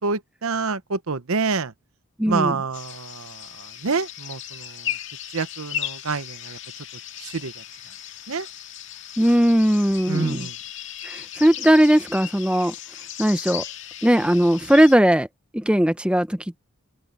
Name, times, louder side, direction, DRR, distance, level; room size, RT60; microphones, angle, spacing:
voice 1, 0.0-1.7 2.3-4.9 5.3-6.6 7.2-7.6 8.3-8.5 10.1-10.5, right 4 dB, 75° right, 0.9 m, -27 dB
voice 2, 2.2-2.6 9.2-10.5 11.0-12.7 13.2-13.6 14.0-15.3 15.5-16.6, equal, 5° right, 0.8 m, -18 dB
sound 1, 2.7-15.0, left 10 dB, 55° left, 2.2 m, -36 dB
head